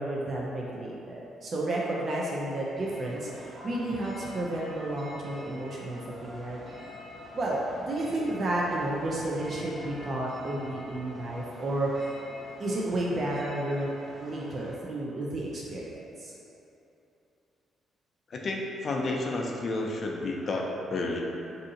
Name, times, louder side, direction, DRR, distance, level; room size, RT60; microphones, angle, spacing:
voice 1, 0.0-6.6 7.3-12.1 12.6-13.9 14.2-16.3, right 1 dB, 45° right, -4 dB, 0.4 m, -31 dB
sound 1, 2.7-14.7, left 1 dB, 65° right, 1.3 m, -46 dB
voice 2, 18.3-21.2, left 2 dB, 50° left, 0 dB, 0.4 m, -31 dB
2.7 x 2.5 x 3.7 m, 2.9 s
cardioid pair, 90°, 0 cm